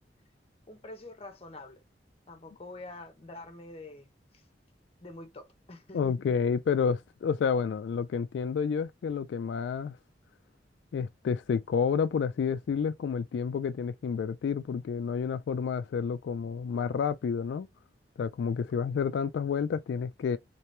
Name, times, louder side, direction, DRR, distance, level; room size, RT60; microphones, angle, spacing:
voice 1, 0.7-1.8 2.3-4.4 5.0-6.1, left 2 dB, 35° left, 0.8 m, -46 dB
voice 2, 5.9-10.0 10.9-17.7 18.2-20.4, left 6 dB, 90° left, 0.3 m, -30 dB
3.3 x 2.9 x 3.2 m
head